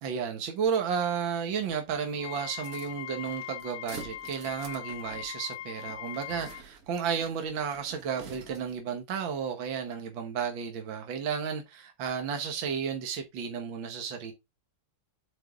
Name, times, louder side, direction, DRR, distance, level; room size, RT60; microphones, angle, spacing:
voice 1, 0.0-14.3, right 7 dB, 65° right, 1.9 m, -33 dB
Wind instrument woodwind instrument, 2.1-6.6, left 12 dB, 75° left, 0.8 m, -41 dB
sound 1, 2.5-8.9, right 5 dB, 50° right, 1.5 m, -48 dB
8.0 x 4.5 x 3.5 m
omnidirectional pair, 2.3 m